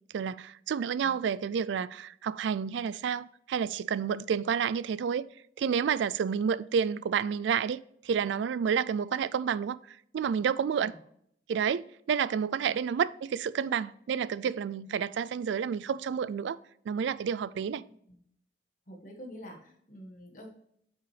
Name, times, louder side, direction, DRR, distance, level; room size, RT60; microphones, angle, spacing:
voice 1, 0.1-5.2 5.6-10.9 11.5-16.6 16.9-17.8, right 7 dB, 75° right, 0.3 m, -30 dB
voice 2, 1.0-1.6 10.8-11.0 12.6-12.8 18.1-18.2 18.9-20.5, equal, 45° left, 1.5 m, -48 dB
8.3 x 6.0 x 3.3 m
head